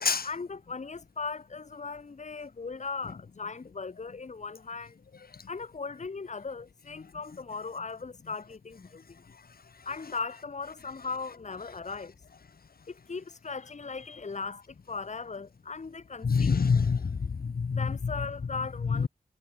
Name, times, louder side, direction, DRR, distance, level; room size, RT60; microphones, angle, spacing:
voice 1, 0.2-5.0 5.5-9.0 9.9-12.1 12.9-16.6 17.7-19.1, left 4 dB, 50° left, 1.0 m, -38 dB
voice 2, 16.2-17.9 18.9-19.1, left 5 dB, 85° left, 1.2 m, -26 dB
wide cardioid pair, 80°, 15 cm